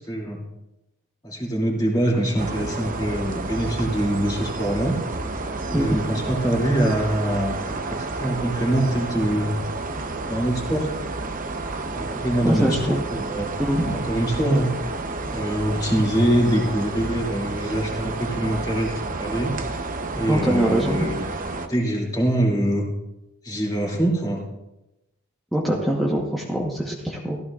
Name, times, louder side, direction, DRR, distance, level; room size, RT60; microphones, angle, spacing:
voice 1, 0.1-0.4 1.2-5.0 5.7-9.5 10.3-10.9 11.9-13.5 13.9-14.7 15.3-18.9 19.2-19.5 20.1-21.2 21.7-22.9 23.4-24.4, right 1 dB, 20° left, -2 dB, 2.9 m, -24 dB
sound 1, 2.4-21.7, right 3 dB, 40° right, 0.9 m, -30 dB
voice 2, 12.4-13.0 13.6-14.0 20.3-21.1 25.5-27.4, right 1 dB, ahead, -4 dB, 1.2 m, -23 dB
15.0 x 14.5 x 2.5 m, 0.93 s
head